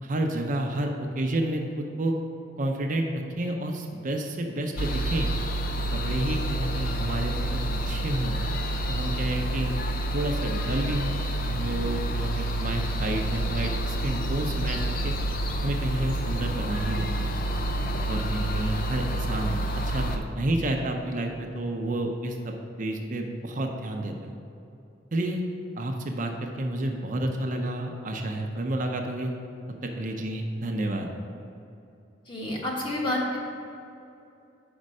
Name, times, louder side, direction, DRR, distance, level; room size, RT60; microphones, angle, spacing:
voice 1, 0.0-2.1 2.6-5.3 5.9-7.6 7.9-8.4 8.9-9.7 10.1-11.1 11.5-15.1 15.6-17.3 18.1-19.6 19.8-22.5 22.8-24.3 25.1-25.4 25.8-29.3 29.8-31.1, right 1 dB, 45° right, 2 dB, 0.6 m, -30 dB
sound 1, 4.8-20.2, right 1 dB, 50° left, 0.5 m, -29 dB
voice 2, 32.3-33.5, left 1 dB, 25° left, -3 dB, 1.2 m, -29 dB
5.3 x 5.1 x 6.3 m, 2.7 s
head